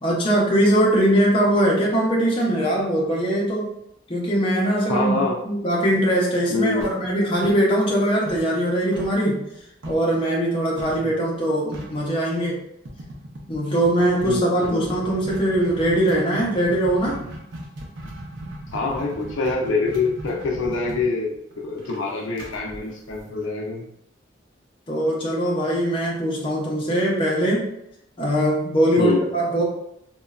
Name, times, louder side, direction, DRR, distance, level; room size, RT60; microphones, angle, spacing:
voice 1, 0.0-3.7 4.1-5.2 5.4-9.4 9.8-12.6 13.5-17.2 24.9-27.7 28.2-29.6, right 1 dB, 25° left, -4 dB, 0.5 m, -21 dB
voice 2, 4.9-5.4 6.5-6.9 11.0-11.1 14.2-14.9 18.7-23.9 29.0-29.3, left 3 dB, 75° left, 0 dB, 0.4 m, -25 dB
sound 1, 6.8-8.0 8.3-10.2 10.8-11.1 11.4-11.5 11.7-12.1 12.9-23.7, right 1 dB, 70° right, 0.6 m, -38 dB
2.9 x 2.1 x 2.3 m, 0.78 s
head